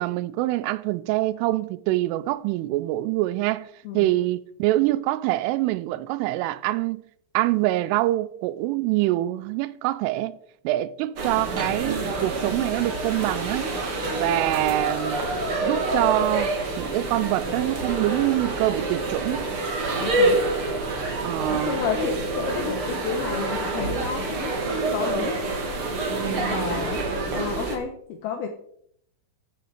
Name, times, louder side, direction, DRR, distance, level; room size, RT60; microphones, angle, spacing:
voice 1, 0.0-7.0 7.3-10.4 10.6-13.7 14.2-15.3 15.6-19.5 21.2-21.8 26.2-26.7, right 16 dB, 85° right, 3.1 m, -25 dB
sound 1, 11.2-27.8, right 2 dB, 40° right, 2.1 m, -27 dB
voice 2, 20.0-20.4 21.5-24.5 24.9-25.4 26.3-27.0 27.4-28.5, left 7 dB, 80° left, 2.3 m, -31 dB
15.5 x 10.0 x 4.8 m
omnidirectional pair, 5.7 m